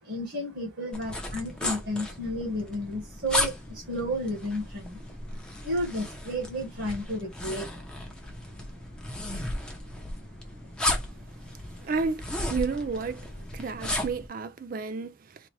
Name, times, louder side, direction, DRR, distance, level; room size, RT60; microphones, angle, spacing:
voice 1, 0.0-8.1 8.5-8.6 9.1-9.2 9.9-10.3 10.9-11.0 11.6-11.7, equal, 60° right, 1.5 m, -33 dB
sound 1, 0.9-14.3, left 1 dB, 5° left, 0.8 m, -35 dB
voice 2, 11.8-12.2 12.5-13.2 13.5-15.4, right 4 dB, 45° right, 0.3 m, -31 dB
4.1 x 2.4 x 3.1 m
head